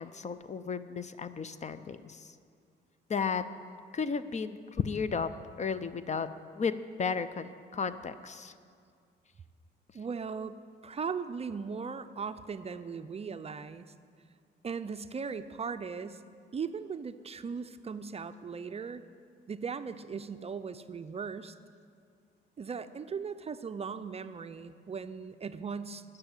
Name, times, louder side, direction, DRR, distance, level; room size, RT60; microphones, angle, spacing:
voice 1, 0.0-2.3 3.1-3.4 3.9-5.3 5.6-6.3 6.6-8.5, left 5 dB, 35° left, 13 dB, 0.5 m, -34 dB
voice 2, 9.9-13.9 14.6-16.2 16.5-19.0 19.5-21.5 22.6-26.0, right 5 dB, 30° right, 11 dB, 0.5 m, -38 dB
12.5 x 6.8 x 8.9 m, 2.2 s
cardioid pair, 90°, 20 cm